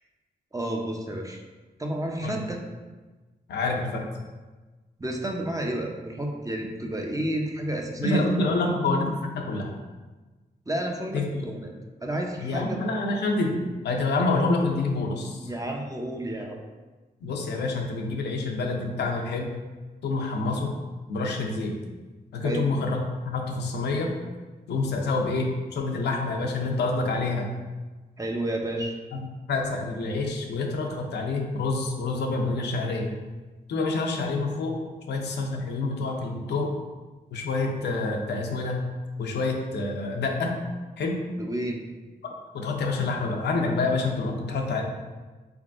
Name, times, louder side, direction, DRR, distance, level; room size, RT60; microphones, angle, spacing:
voice 1, 0.5-1.4 1.8-2.6 5.0-8.5 10.7-11.7 12.0-12.8 15.4-16.6 22.4-22.7 28.2-29.0 41.4-41.8, right 1 dB, 20° right, 1 dB, 0.6 m, -30 dB
voice 2, 3.5-4.0 8.0-9.7 11.1-11.4 12.4-15.5 17.2-19.5 20.0-20.7 21.1-21.8 22.3-24.1 24.7-27.5 29.1-33.1 33.7-34.8 35.1-36.7 37.3-38.8 39.2-40.5 41.0-41.2 42.5-44.8, left 3 dB, 80° left, 1 dB, 0.5 m, -27 dB
3.8 x 3.5 x 2.5 m, 1.3 s
cardioid pair, 50°, 17 cm